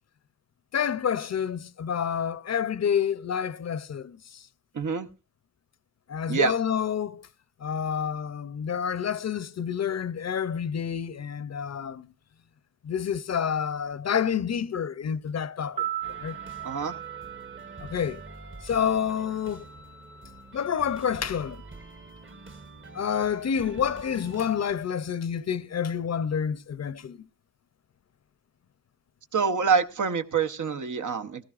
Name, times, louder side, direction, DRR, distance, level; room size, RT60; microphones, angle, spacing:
voice 1, 0.7-4.4 6.1-7.3 7.6-12.1 12.8-15.9 16.2-16.4 17.8-18.2 18.6-19.6 20.5-21.6 22.9-27.2, left 8 dB, 60° left, 0.6 m, -28 dB
voice 2, 4.7-5.1 6.3-6.5 16.6-16.9 29.3-31.4, right 5 dB, 80° right, 0.9 m, -26 dB
sound 1, 15.6-19.8 20.1-20.2, right 12 dB, 20° right, 0.6 m, -38 dB
sound 2, 16.0-24.7, right 3 dB, 40° right, 1.0 m, -46 dB
18.5 x 14.5 x 2.4 m
wide cardioid pair, 75°, 30 cm